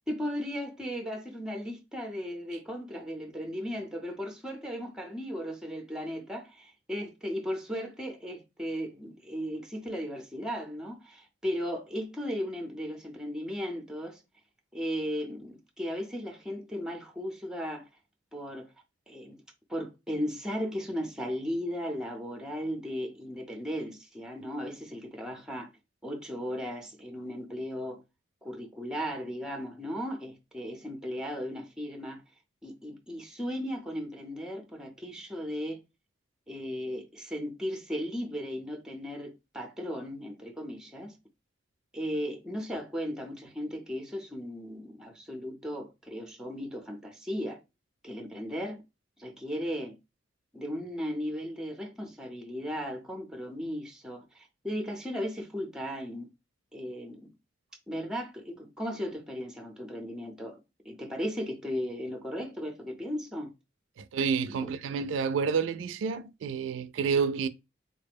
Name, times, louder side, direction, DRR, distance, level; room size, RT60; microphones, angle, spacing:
voice 1, 0.1-14.2 14.7-17.8 18.3-18.7 19.1-19.4 19.7-25.7 26.0-28.0 28.4-32.2 32.6-35.8 36.5-41.2 41.9-47.6 48.0-48.8 49.2-50.0 50.5-56.3 56.7-57.3 57.9-60.6 60.8-63.5, equal, 5° right, 0.6 m, -36 dB
voice 2, 64.0-67.5, right 5 dB, 80° right, 0.3 m, -29 dB
4.0 x 2.1 x 3.4 m
head